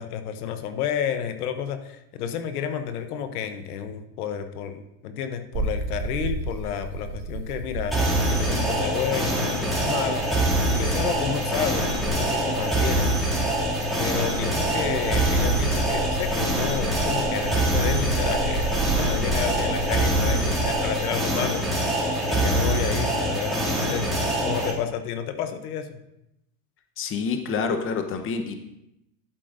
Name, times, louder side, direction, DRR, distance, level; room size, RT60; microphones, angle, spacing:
voice 1, 0.0-13.1 14.0-26.0, left 8 dB, 85° left, 9 dB, 0.9 m, -31 dB
sound 1, 5.5-21.1, right 2 dB, 60° right, 2.0 m, -32 dB
sound 2, 7.9-24.7, right 1 dB, ahead, 2.4 m, -24 dB
voice 2, 27.0-28.5, left 5 dB, 30° left, 6 dB, 0.9 m, -28 dB
11.5 x 7.8 x 2.6 m, 0.86 s
supercardioid pair, 120°, 44 cm